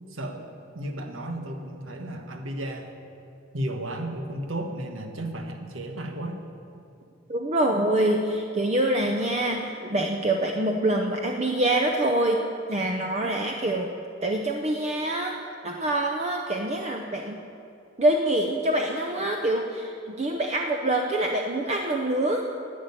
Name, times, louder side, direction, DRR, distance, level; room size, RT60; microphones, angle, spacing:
voice 1, 0.1-2.9 3.5-6.4, right 1 dB, 85° right, 4 dB, 1.4 m, -34 dB
voice 2, 7.3-9.7 9.9-12.4 12.7-13.9 14.2-15.4 15.6-17.4 18.0-22.4, right 1 dB, 35° right, 2 dB, 0.7 m, -25 dB
11.0 x 7.8 x 9.7 m, 2.5 s
head